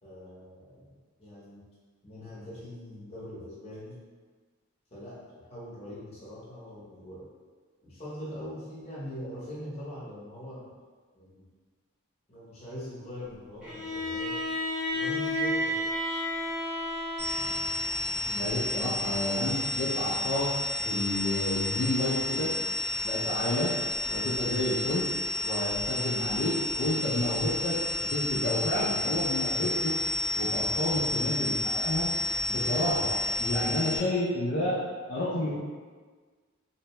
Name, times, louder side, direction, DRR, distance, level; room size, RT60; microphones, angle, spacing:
voice 1, 0.0-1.6 2.0-4.0 4.9-7.3 7.8-10.7 11.1-11.5 12.3-14.4 14.9-15.9, equal, 30° left, -8 dB, 0.8 m, -42 dB
Bowed string instrument, 13.6-17.9, left 1 dB, ahead, 0.8 m, -31 dB
sound 1, 17.2-34.0, left 1 dB, 55° right, 0.8 m, -31 dB
voice 2, 18.2-20.5 20.8-22.5 23.0-23.7 24.1-25.1 25.4-30.0 30.3-32.1 32.5-34.8 35.1-35.5, left 1 dB, 50° left, -8 dB, 0.4 m, -30 dB
2.6 x 2.1 x 2.9 m, 1.5 s
head